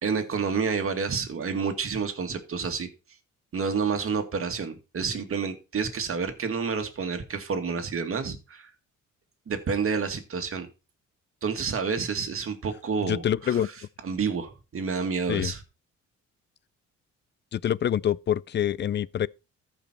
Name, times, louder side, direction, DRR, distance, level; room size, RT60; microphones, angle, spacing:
voice 1, 0.0-2.9 3.5-8.7 9.5-10.7 11.4-13.7 14.0-15.6, right 5 dB, 45° right, 2.1 m, -29 dB
voice 2, 13.0-13.7 15.3-15.5 17.5-19.3, left 10 dB, 35° left, 0.4 m, -26 dB
14.0 x 5.3 x 4.4 m
cardioid pair, 90°, 30 cm